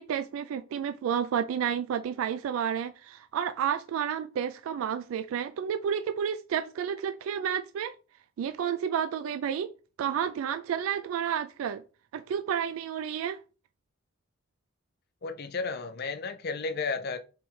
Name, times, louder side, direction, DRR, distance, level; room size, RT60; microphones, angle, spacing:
voice 1, 0.0-7.9 8.4-9.7 10.0-11.8 12.1-13.4, right 8 dB, 90° right, 0.3 m, -31 dB
voice 2, 15.2-17.2, left 4 dB, 50° left, 0.6 m, -33 dB
3.5 x 3.1 x 4.5 m
head